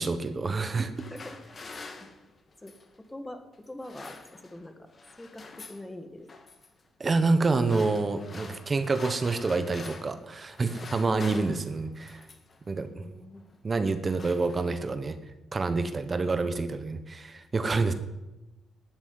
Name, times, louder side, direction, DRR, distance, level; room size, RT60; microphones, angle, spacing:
voice 1, 0.0-0.9 7.0-12.2 12.7-13.0 13.6-15.2 15.5-17.9, right 3 dB, 30° right, 10 dB, 1.2 m, -27 dB
sound 1, 0.8-3.0 3.6-4.7 4.9-5.9 6.3-6.7 7.4-10.2 10.5-12.6 13.4-13.6 13.9-15.0, left 3 dB, 40° left, 2.1 m, -46 dB
voice 2, 1.1-1.7 2.0-2.1 2.6-2.7 3.1-4.9 5.2-6.3 11.0-11.8 12.9-13.4, left 1 dB, 10° left, 7 dB, 1.8 m, -44 dB
12.5 x 7.4 x 9.8 m, 1.0 s
cardioid pair, 90°, 0 cm